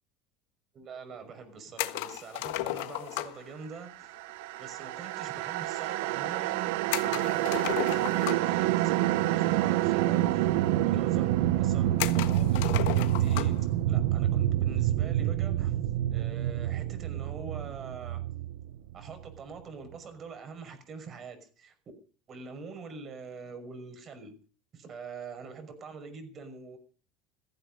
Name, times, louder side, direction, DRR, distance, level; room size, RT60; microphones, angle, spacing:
voice 1, 0.7-4.2 4.6-15.7 16.1-18.2 18.9-21.7 22.3-24.3 24.7-26.8, right 4 dB, 30° right, 5.7 m, -44 dB
sound 1, 1.8-3.5 6.9-8.6 9.7-9.8 10.1-10.2 10.9-11.0 12.0-13.6, left 16 dB, 85° left, 1.4 m, -34 dB
sound 2, 4.1-19.4, right 14 dB, 80° right, 0.9 m, -27 dB
16.0 x 15.5 x 5.3 m
cardioid pair, 150°, 0 cm